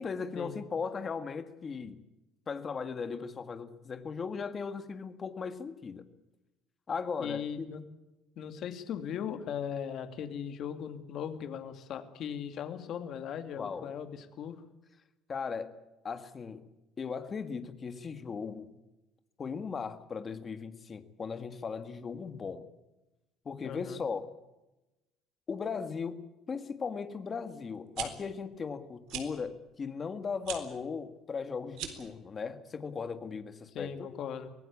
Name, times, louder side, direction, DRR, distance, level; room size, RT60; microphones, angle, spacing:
voice 1, 0.0-2.0 2.5-6.1 6.9-7.7 13.6-13.9 15.3-15.7 16.0-16.6 17.0-18.7 19.4-22.7 23.4-24.3 25.5-33.9, left 5 dB, 20° left, 10 dB, 1.6 m, -37 dB
voice 2, 7.2-7.8 8.4-14.6 23.6-24.0 33.7-34.5, left 8 dB, 40° left, 8 dB, 2.5 m, -38 dB
sound 1, 27.8-28.1 29.1-29.3 30.4-30.6 31.7-32.1, right 10 dB, 60° right, 3.8 m, -38 dB
24.0 x 18.5 x 8.5 m, 0.99 s
cardioid pair, 175°, 0 cm